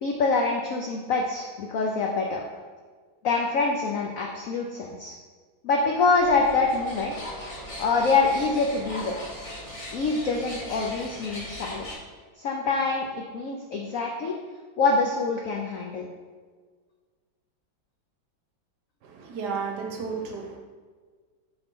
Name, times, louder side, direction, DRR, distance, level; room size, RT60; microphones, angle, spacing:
voice 1, 0.0-2.4 3.2-5.1 5.6-7.2 7.8-9.1 9.9-11.9 12.4-14.4 14.8-16.1, left 4 dB, 85° left, 0 dB, 0.7 m, -25 dB
sound 1, 6.1-11.9, left 1 dB, 30° left, 0.7 m, -39 dB
voice 2, 19.0-20.6, right 5 dB, 65° right, 1 dB, 1.3 m, -33 dB
4.4 x 4.1 x 5.2 m, 1.5 s
omnidirectional pair, 2.1 m